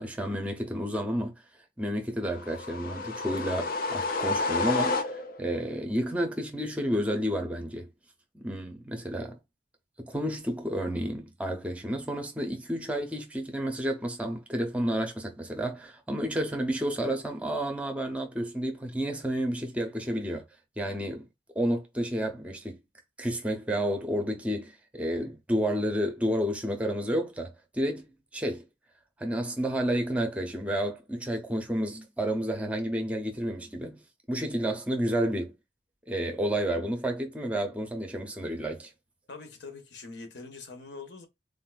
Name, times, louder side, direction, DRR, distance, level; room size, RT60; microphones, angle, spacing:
voice 1, 0.0-1.3 1.8-7.9 8.3-9.4 10.0-20.4 20.8-21.3 21.6-22.8 23.2-28.1 28.3-28.6 29.2-34.0 34.3-35.5 36.1-38.9, equal, 5° right, 0.6 m, -30 dB
sound 1, 2.3-5.5, left 3 dB, 50° left, 0.5 m, -30 dB
voice 2, 39.3-41.3, left 4 dB, 70° left, 1.0 m, -43 dB
3.7 x 2.6 x 2.3 m
head